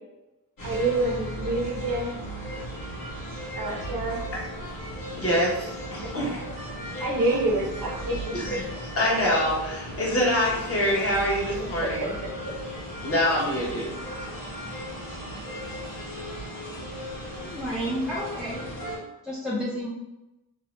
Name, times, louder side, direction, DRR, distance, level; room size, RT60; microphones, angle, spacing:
sound 1, 0.6-19.0, equal, 65° left, 1.2 m, -36 dB
voice 1, 0.6-2.2 3.6-4.2 6.0-6.1 7.0-8.6 11.8-12.1, right 2 dB, 65° right, -1 dB, 0.9 m, -27 dB
voice 2, 5.2-6.4 8.3-8.6 9.0-12.1 13.0-13.9, equal, 40° left, -4 dB, 1.0 m, -25 dB
voice 3, 17.4-18.6 19.2-19.9, equal, ahead, -7 dB, 0.4 m, -30 dB
2.7 x 2.0 x 3.0 m, 0.97 s
cardioid pair, 105°, 35 cm